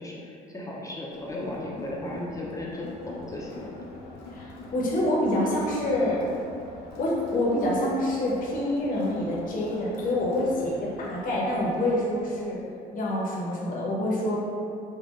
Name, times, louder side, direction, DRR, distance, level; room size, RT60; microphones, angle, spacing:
voice 1, 0.0-3.8, left 1 dB, 20° left, -4 dB, 0.6 m, -36 dB
Crowd, 1.1-12.7, left 2 dB, 85° left, 0.6 m, -44 dB
voice 2, 4.3-6.2 7.0-12.6 12.9-14.4, left 1 dB, 55° left, -4 dB, 0.9 m, -26 dB
5.4 x 2.2 x 2.4 m, 2.5 s
cardioid pair, 110°, 17 cm